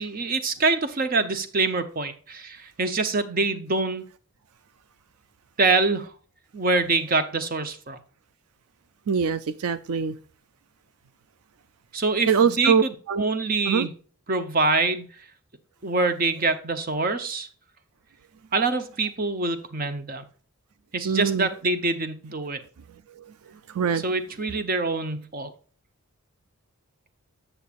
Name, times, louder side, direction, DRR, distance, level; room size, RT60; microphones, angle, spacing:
voice 1, 0.0-4.0 5.6-6.1 6.5-8.0 11.9-13.9 14.3-15.1 15.8-17.5 18.5-20.2 20.9-22.6 24.0-25.5, right 3 dB, 40° right, 0.7 m, -25 dB
voice 2, 9.1-10.2 12.3-13.2 13.7-13.9 21.0-21.5 23.1-23.3 23.7-24.0, right 6 dB, 80° right, 0.4 m, -23 dB
8.4 x 7.0 x 2.4 m
head